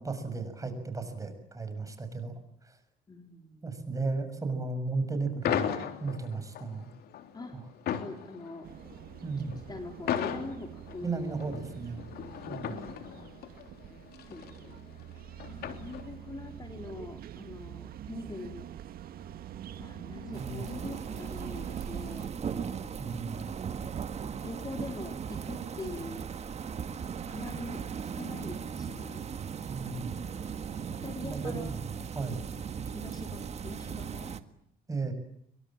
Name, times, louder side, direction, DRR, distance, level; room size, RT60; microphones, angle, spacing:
voice 1, 0.0-2.3 2.6-2.8 3.6-5.7 6.0-6.9 9.2-9.5 11.0-12.0 12.5-12.8 20.3-20.6 23.0-23.5 29.7-30.1 31.2-31.8 32.1-32.4 34.9-35.1, right 3 dB, 20° right, 9 dB, 6.9 m, -35 dB
voice 2, 3.1-3.8 7.3-7.6 8.0-8.7 9.7-11.8 12.6-13.6 13.9-14.8 15.5-18.7 19.8-22.9 24.4-26.3 27.3-29.3 31.0-31.8 32.8-34.4, left 2 dB, 25° left, 5 dB, 3.8 m, -43 dB
sound 1, 5.4-16.4, left 9 dB, 70° left, 3.4 m, -37 dB
sound 2, 8.6-22.3, right 11 dB, 60° right, 1.8 m, -45 dB
sound 3, 20.3-34.4, right 7 dB, 40° right, 1.8 m, -38 dB
27.5 x 24.0 x 8.9 m, 0.71 s
cardioid pair, 110°, 17 cm